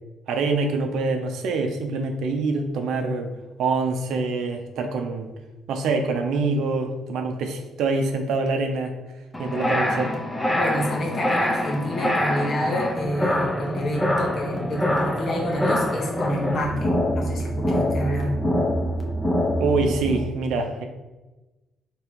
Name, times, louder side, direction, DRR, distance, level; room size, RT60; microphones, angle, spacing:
voice 1, 0.3-3.3 3.6-5.3 5.7-8.9 9.4-10.1 19.6-20.9, right 3 dB, 85° right, 5 dB, 0.5 m, -25 dB
sound 1, 9.3-20.2, equal, 15° left, 0.8 m, -25 dB
voice 2, 10.5-18.4, left 1 dB, 50° left, -1 dB, 1.1 m, -28 dB
3.4 x 2.9 x 4.6 m, 1.1 s
cardioid pair, 90°, 0 cm